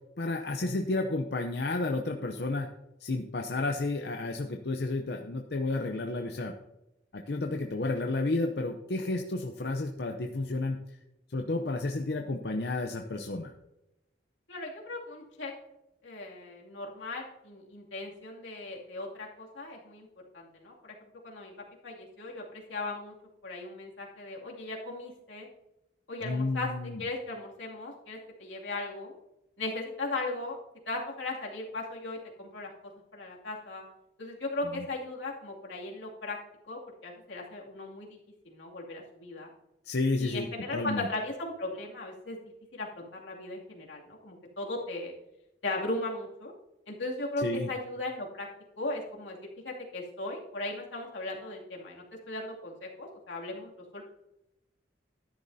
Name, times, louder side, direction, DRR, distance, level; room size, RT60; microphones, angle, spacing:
voice 1, 0.2-2.7 3.0-6.5 7.1-10.8 11.3-13.5 26.2-27.0 34.7-34.8 39.8-40.5 40.7-41.1 47.4-47.7, left 2 dB, 60° left, 3 dB, 0.6 m, -31 dB
voice 2, 14.5-15.5 16.0-20.1 20.3-20.9 21.2-21.5 21.8-23.1 23.4-25.5 26.1-26.7 27.0-29.1 29.6-30.6 30.9-32.7 33.1-33.8 34.2-36.4 36.7-38.2 38.4-39.5 40.2-42.4 42.7-45.1 45.6-46.5 46.9-48.5 48.8-49.4 49.6-54.0, left 2 dB, 90° left, -2 dB, 2.5 m, -37 dB
13.5 x 10.5 x 2.7 m, 0.91 s
head